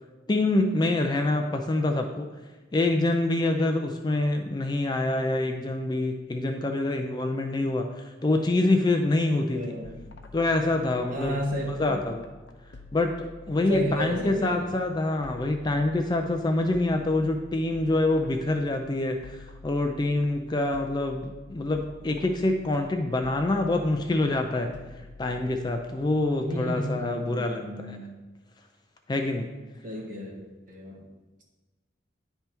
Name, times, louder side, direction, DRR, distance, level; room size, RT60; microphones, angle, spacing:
voice 1, 0.3-2.3 2.7-9.7 10.3-12.3 12.9-24.7 25.2-28.0 29.1-29.5, left 2 dB, 20° left, 5 dB, 0.3 m, -26 dB
voice 2, 9.5-9.9 11.1-12.0 13.7-14.7 26.4-28.1 29.8-30.4 30.7-31.0, equal, 45° right, -2 dB, 1.5 m, -33 dB
sound 1, 9.8-27.4, left 3 dB, 60° left, 0.6 m, -48 dB
9.4 x 3.4 x 4.4 m, 1.2 s
head